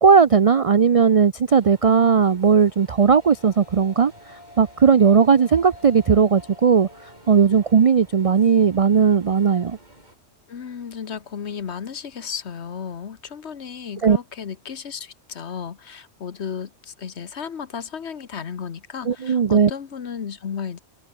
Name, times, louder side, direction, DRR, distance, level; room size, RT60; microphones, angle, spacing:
voice 1, 0.0-4.1 4.6-6.9 7.3-9.8 14.0-14.2 19.1-19.7, right 6 dB, 65° right, 0.3 m, -17 dB
sound 1, 1.5-10.2, right 1 dB, 35° right, 6.1 m, -51 dB
sound 2, 2.7-11.1, left 2 dB, 80° left, 7.5 m, -50 dB
voice 2, 10.5-20.8, left 7 dB, 55° left, 1.4 m, -34 dB
omnidirectional pair, 1.3 m